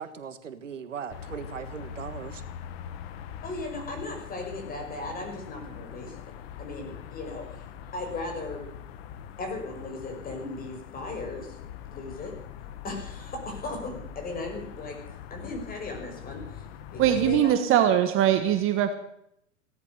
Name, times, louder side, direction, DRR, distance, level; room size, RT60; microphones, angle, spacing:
voice 1, 0.0-2.4, right 7 dB, 85° right, 11 dB, 1.7 m, -38 dB
sound 1, 1.1-17.4, left 8 dB, 55° left, 1.5 m, -42 dB
voice 2, 3.4-6.2 6.6-7.6 7.9-8.7 9.4-11.6 11.9-12.3 12.8-15.0 15.3-16.7 16.9-17.9, left 2 dB, 25° left, 3 dB, 5.8 m, -36 dB
voice 3, 17.0-18.9, right 10 dB, 35° right, 9 dB, 1.5 m, -22 dB
17.5 x 11.5 x 6.7 m, 0.73 s
hypercardioid pair, 110°, 36 cm